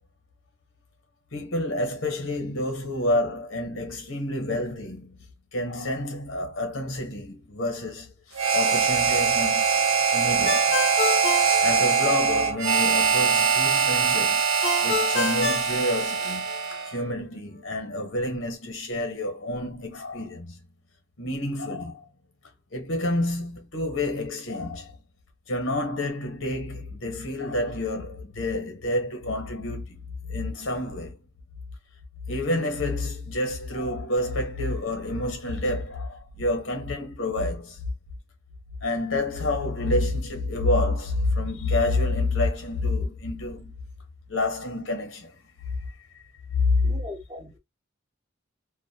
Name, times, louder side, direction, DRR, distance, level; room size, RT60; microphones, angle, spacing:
voice 1, 1.3-5.2 5.5-9.7 10.1-10.8 11.6-14.4 14.8-20.5 21.2-22.0 22.7-24.9 25.5-30.0 30.3-31.2 32.3-37.8 38.8-43.7 44.3-45.3 46.6-46.9, left 2 dB, 70° left, 0.9 m, -28 dB
Harmonica, 8.3-17.0, right 6 dB, 85° right, 0.6 m, -22 dB
Ringtone, 10.4-12.4 14.6-16.6, left 3 dB, 35° left, 0.5 m, -29 dB
voice 2, 46.8-47.6, left 2 dB, 15° right, 0.5 m, -39 dB
2.4 x 2.1 x 2.6 m
head